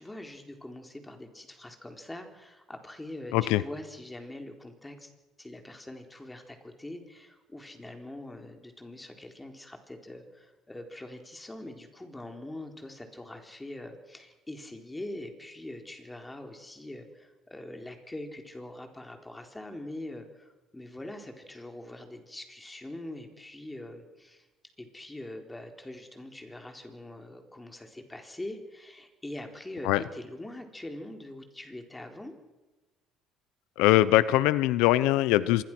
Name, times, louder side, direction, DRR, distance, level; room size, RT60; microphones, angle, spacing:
voice 1, 0.0-5.1 5.4-24.5 24.8-32.4, left 1 dB, 10° left, 4 dB, 4.0 m, -43 dB
voice 2, 33.8-35.6, left 16 dB, 90° left, 16 dB, 0.9 m, -22 dB
26.0 x 22.0 x 6.2 m, 1.2 s
cardioid pair, 125°, 0 cm